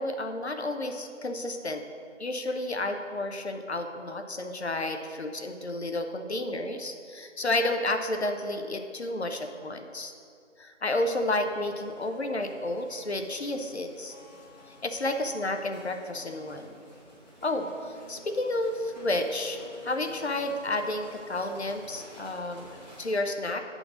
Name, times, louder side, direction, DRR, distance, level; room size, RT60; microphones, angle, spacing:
voice 1, 0.0-1.8 2.2-10.1 10.6-14.1 14.7-16.7 17.4-22.7 23.0-23.6, left 2 dB, 60° left, 5 dB, 0.7 m, -31 dB
sound 1, 11.0-23.2, equal, 35° left, 1.6 m, -52 dB
sound 2, 12.9-17.1 17.4-22.0, left 2 dB, 40° right, 0.8 m, -49 dB
7.5 x 3.8 x 6.2 m, 2.4 s
figure-of-eight pair, 170°, 37 cm